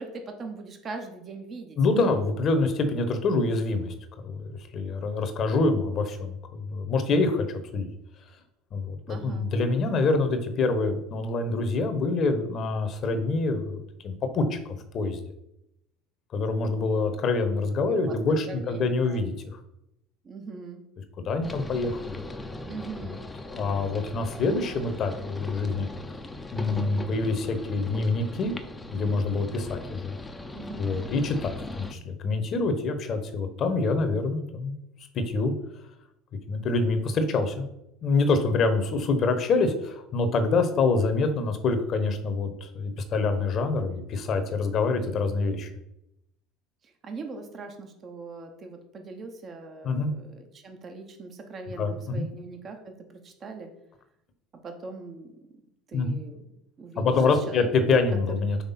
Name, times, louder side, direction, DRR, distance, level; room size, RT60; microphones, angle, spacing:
voice 1, 0.0-1.8 9.1-9.5 17.8-19.2 20.2-20.8 22.7-23.2 26.7-26.9 30.5-30.8 46.8-53.7 54.6-55.3 55.9-56.4 56.8-57.7, right 3 dB, 40° right, 5 dB, 1.0 m, -41 dB
voice 2, 1.8-3.9 4.2-7.9 8.7-14.6 14.9-15.2 16.3-19.6 21.2-22.2 23.5-25.9 26.5-28.5 28.9-30.1 30.8-34.7 35.1-35.5 36.5-37.7 38.0-45.7 49.8-50.1 51.8-52.2 55.9-56.2 57.0-58.6, left 3 dB, 45° left, 8 dB, 1.0 m, -26 dB
sound 1, 21.4-31.9, left 2 dB, 15° left, 0.7 m, -39 dB
5.8 x 3.3 x 5.8 m, 0.82 s
hypercardioid pair, 75°, 0 cm